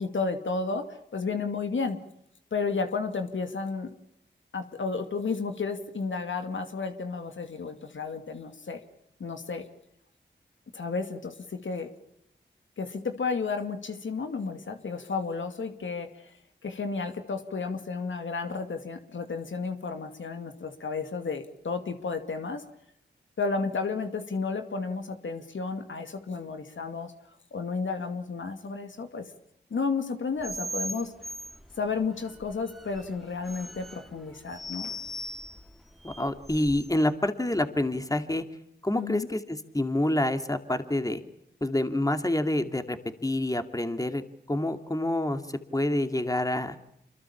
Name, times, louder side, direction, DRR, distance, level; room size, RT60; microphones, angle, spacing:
voice 1, 0.0-2.0 2.5-3.9 4.5-8.8 9.2-9.6 10.7-11.9 12.8-16.3 16.6-22.6 23.4-27.1 27.5-29.3 29.7-31.1 31.8-34.9 38.9-39.3, left 4 dB, 80° left, 6 dB, 2.3 m, -32 dB
sound 1, 30.4-37.1, equal, ahead, 2.3 m, -40 dB
voice 2, 36.0-38.4 38.8-41.2 41.6-44.2 44.5-45.4 45.7-46.8, left 1 dB, 20° left, 8 dB, 2.4 m, -27 dB
26.5 x 22.5 x 7.2 m, 0.78 s
cardioid pair, 45°, 20 cm